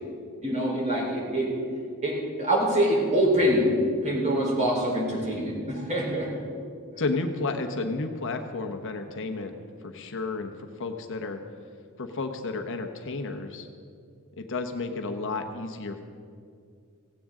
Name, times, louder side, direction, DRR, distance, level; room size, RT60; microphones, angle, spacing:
voice 1, 0.4-1.5 2.0-3.7 4.0-6.3, right 1 dB, 30° right, -3 dB, 4.0 m, -25 dB
voice 2, 7.0-9.5 9.8-11.4 12.0-13.7 14.4-16.0, left 3 dB, 60° left, 6 dB, 1.0 m, -32 dB
17.0 x 16.5 x 3.8 m, 2.3 s
head